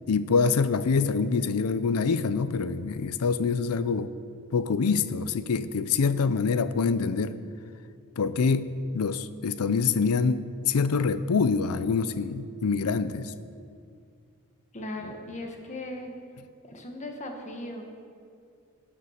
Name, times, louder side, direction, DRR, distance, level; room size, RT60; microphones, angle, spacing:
voice 1, 0.1-4.1 4.5-7.4 8.2-13.3, left 5 dB, 80° left, 14 dB, 0.5 m, -25 dB
voice 2, 14.7-16.1 16.6-17.8, left 1 dB, 35° left, 3 dB, 1.3 m, -37 dB
12.0 x 6.9 x 6.4 m, 2.3 s
head